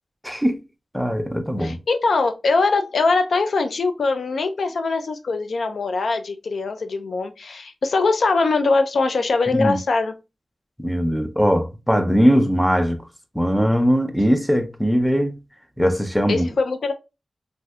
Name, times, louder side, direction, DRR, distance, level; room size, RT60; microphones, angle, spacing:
voice 1, 0.2-0.6 0.9-1.8 9.5-9.8 10.8-13.0 13.3-15.4 15.8-16.5, equal, ahead, 0.5 m, -20 dB
voice 2, 1.6-10.1 16.3-16.9, left 3 dB, 90° left, 0.4 m, -22 dB
3.3 x 2.6 x 2.3 m
wide cardioid pair, 115°, 0 cm